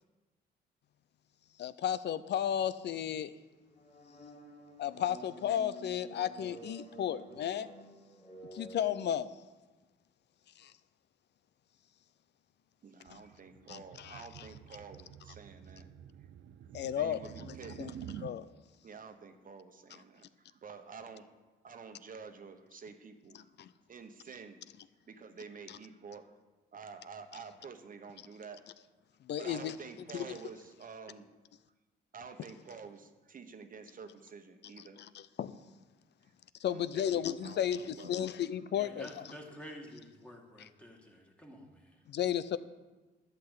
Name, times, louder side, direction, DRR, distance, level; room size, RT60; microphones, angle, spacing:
voice 1, 1.6-3.3 4.8-7.7 8.5-9.3 10.6-10.7 13.1-13.2 13.7-14.5 16.7-17.9 18.2-18.5 23.3-23.7 25.7-25.8 29.2-29.8 30.1-30.3 35.0-35.5 36.6-39.3 40.6-40.7 42.1-42.6, left 10 dB, 60° left, 15 dB, 0.6 m, -34 dB
sound 1, 3.7-9.1, right 1 dB, 35° left, 3.1 m, -51 dB
voice 2, 12.8-15.9 16.8-18.0 18.8-21.3 21.6-23.5 23.9-24.6 25.1-26.3 26.7-28.6 29.4-31.3 32.1-35.0 36.7-38.2, right 5 dB, 45° right, 7 dB, 1.2 m, -49 dB
sound 2, 13.1-18.3, right 9 dB, 65° right, 0.6 m, -49 dB
voice 3, 38.7-42.0, equal, 5° left, 0 dB, 2.3 m, -50 dB
12.0 x 5.9 x 8.2 m, 1.2 s
cardioid pair, 90°, 20 cm